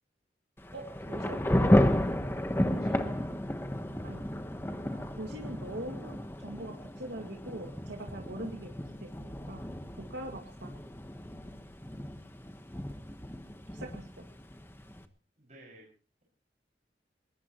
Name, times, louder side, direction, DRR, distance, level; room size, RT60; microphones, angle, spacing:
Thunder / Rain, 0.6-15.0, left 1 dB, 15° left, 1.2 m, -32 dB
voice 1, 0.7-1.7 4.0-4.2 4.7-8.7 9.0-9.6 9.9-10.7 13.7-14.2, right 1 dB, 90° right, 2 dB, 2.2 m, -43 dB
voice 2, 2.7-3.4 15.4-15.9, right 1 dB, 40° right, -2 dB, 6.0 m, -54 dB
21.5 x 19.0 x 3.1 m, 0.40 s
head